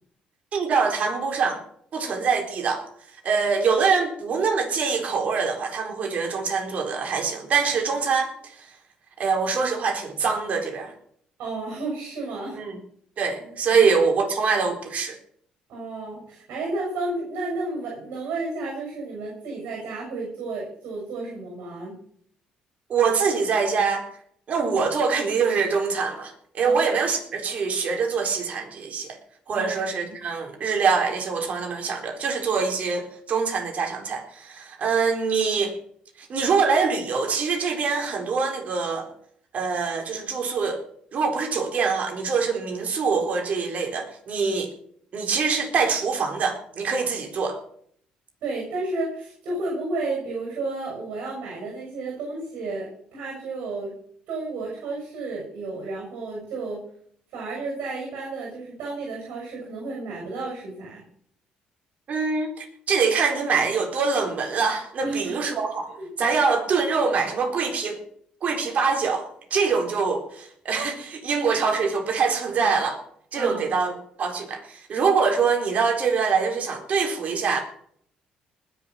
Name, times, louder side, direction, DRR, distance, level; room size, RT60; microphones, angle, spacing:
voice 1, 0.5-1.6 1.9-2.8 3.2-8.7 9.2-10.9 12.5-12.8 13.2-15.2 22.9-24.1 24.5-29.2 29.5-35.8 36.2-39.1 39.5-40.8 41.1-44.7 45.1-47.6 62.1-65.9 66.2-68.0 68.4-73.0 73.3-73.9 74.2-77.6, right 5 dB, 55° right, 3 dB, 4.2 m, -24 dB
voice 2, 11.4-12.6 13.7-13.8 15.7-22.0 26.6-27.0 29.5-30.2 48.4-53.9 54.3-56.8 57.3-61.0 65.0-65.4 65.9-66.1 73.3-73.6, right 3 dB, 75° right, -1 dB, 6.5 m, -32 dB
20.0 x 7.2 x 6.0 m, 0.63 s
supercardioid pair, 65°, 3 cm